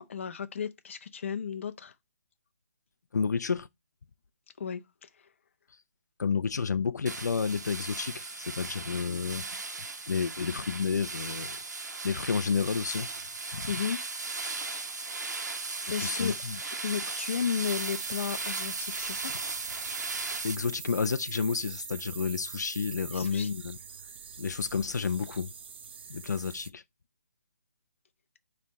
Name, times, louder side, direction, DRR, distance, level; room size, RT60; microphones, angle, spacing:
voice 1, 0.1-1.9 4.6-5.1 13.7-14.0 15.9-16.4 16.8-19.4 23.1-23.5, left 7 dB, 45° left, 0.8 m, -34 dB
voice 2, 3.1-3.7 6.2-9.5 10.1-11.6 12.0-13.1 13.5-13.7 16.0-16.6 20.4-23.8 24.4-25.5 26.1-26.8, left 5 dB, 85° left, 0.5 m, -30 dB
sound 1, 7.1-20.6, right 3 dB, 90° right, 1.3 m, -37 dB
sound 2, 17.6-26.7, right 6 dB, 40° right, 0.5 m, -42 dB
9.1 x 3.3 x 4.0 m
hypercardioid pair, 170°, 9 cm